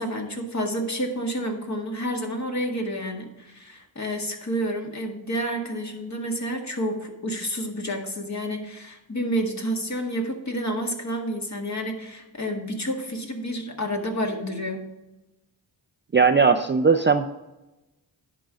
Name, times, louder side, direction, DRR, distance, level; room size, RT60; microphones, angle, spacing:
voice 1, 0.0-14.9, equal, 35° left, 2 dB, 1.8 m, -29 dB
voice 2, 16.1-17.3, right 5 dB, 25° right, 5 dB, 0.5 m, -18 dB
10.5 x 3.9 x 6.1 m, 0.99 s
cardioid pair, 55°, 47 cm